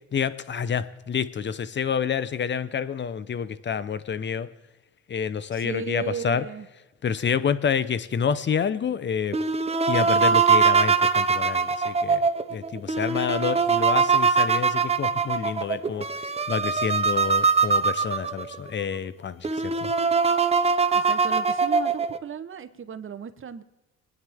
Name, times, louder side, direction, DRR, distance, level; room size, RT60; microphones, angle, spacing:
voice 1, 0.1-4.5 5.1-6.4 7.0-9.4 9.9-12.2 12.5-16.1 16.5-19.9, left 7 dB, 35° left, 16 dB, 0.8 m, -28 dB
voice 2, 5.5-6.7 20.9-23.6, right 8 dB, 40° right, 10 dB, 1.0 m, -35 dB
sound 1, 9.3-18.6 19.1-19.2 19.4-22.2, right 5 dB, 20° right, 0.7 m, -22 dB
23.0 x 9.7 x 3.6 m, 1.1 s
supercardioid pair, 85°, 33 cm